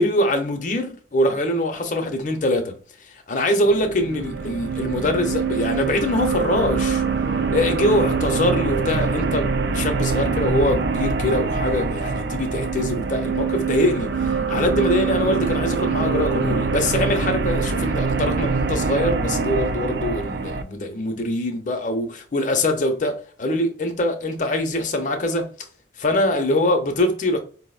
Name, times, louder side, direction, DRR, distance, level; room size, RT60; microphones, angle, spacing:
voice 1, 0.0-2.8 3.3-7.0 7.5-25.4 26.0-27.4, left 1 dB, 45° left, 0.6 m, -23 dB
sound 1, 3.6-20.6, right 4 dB, 65° right, 0.4 m, -24 dB
4.6 x 2.0 x 2.3 m
head